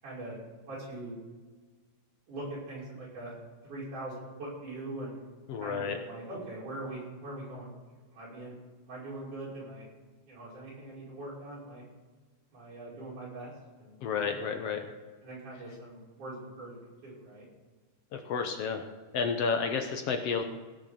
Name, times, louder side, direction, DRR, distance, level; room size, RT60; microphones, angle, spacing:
voice 1, 0.0-1.2 2.3-3.3 3.6-5.2 5.6-7.7 8.1-8.6 8.9-9.8 10.3-11.8 12.5-14.7 15.2-16.7 17.0-17.5, right 2 dB, 65° right, -7 dB, 7.1 m, -42 dB
voice 2, 5.5-6.0 14.0-14.8 18.1-18.9 19.1-20.4, left 5 dB, 65° left, 5 dB, 1.6 m, -31 dB
18.0 x 6.5 x 6.8 m, 1.4 s
omnidirectional pair, 3.8 m